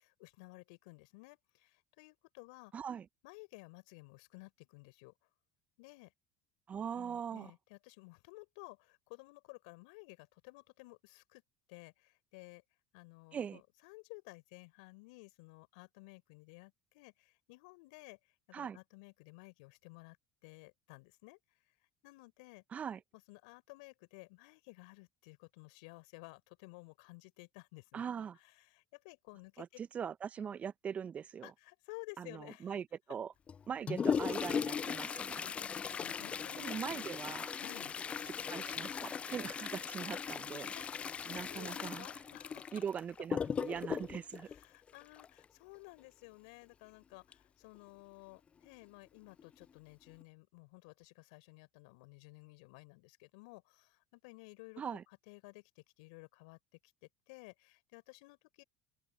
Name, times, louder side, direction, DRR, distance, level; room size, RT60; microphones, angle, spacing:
voice 1, 0.0-2.7 3.2-5.1 5.8-6.1 6.9-11.4 11.7-12.6 12.9-20.2 20.4-21.4 21.7-21.8 22.0-22.6 23.1-28.0 28.4-29.8 30.4-30.5 31.4-32.8 35.4-37.1 37.6-37.9 40.7-40.9 41.5-42.7 44.4-56.6 57.0-58.6, left 28 dB, 65° left, 4.6 m, -55 dB
voice 2, 2.7-3.0 6.7-7.5 13.3-13.6 18.5-18.8 22.7-23.0 27.9-28.4 29.6-31.5 32.2-33.3 33.7-35.5 36.6-37.5 38.5-40.7 41.3-42.1 42.7-44.5 54.8-55.0, right 7 dB, 35° right, 1.3 m, -41 dB
Toilet flush, 33.5-45.4 47.3-47.4 47.8-47.9 48.6-48.7 49.4-49.6 50.1-50.2, left 6 dB, 30° left, 0.5 m, -38 dB
open air
hypercardioid pair, 65°, 4 cm